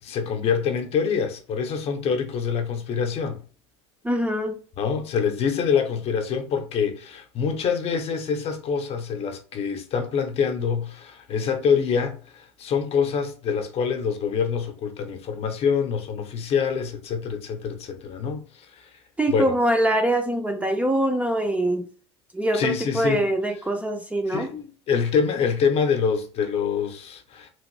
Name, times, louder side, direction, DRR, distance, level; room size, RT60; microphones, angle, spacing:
voice 1, 0.0-3.4 4.8-18.9 19.3-19.6 22.5-23.2 24.3-27.5, left 6 dB, 45° left, 0.7 m, -25 dB
voice 2, 4.0-4.6 19.2-21.9 22.3-24.5, right 1 dB, 10° right, 0.5 m, -23 dB
3.0 x 2.5 x 3.1 m
hypercardioid pair, 90°, 15 cm